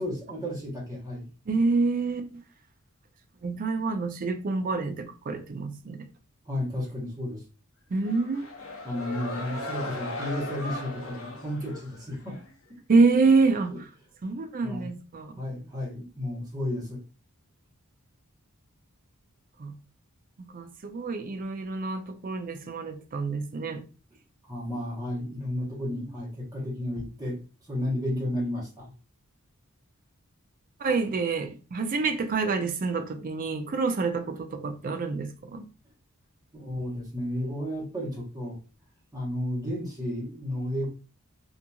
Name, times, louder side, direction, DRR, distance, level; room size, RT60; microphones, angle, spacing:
voice 1, 0.0-1.3 6.5-7.4 8.8-12.4 13.7-13.8 14.6-14.9 15.3-17.0 24.4-27.4 27.7-28.9 36.5-38.6 39.1-40.9, left 1 dB, 15° right, 1.0 m, -32 dB
voice 2, 1.5-2.4 3.4-6.1 7.9-8.4 12.9-13.7 14.2-15.4 19.6-19.7 20.5-23.8 30.8-35.7, right 4 dB, 40° right, 0.4 m, -27 dB
sound 1, 8.0-12.5, left 2 dB, 65° left, 0.6 m, -37 dB
2.8 x 2.5 x 2.2 m
head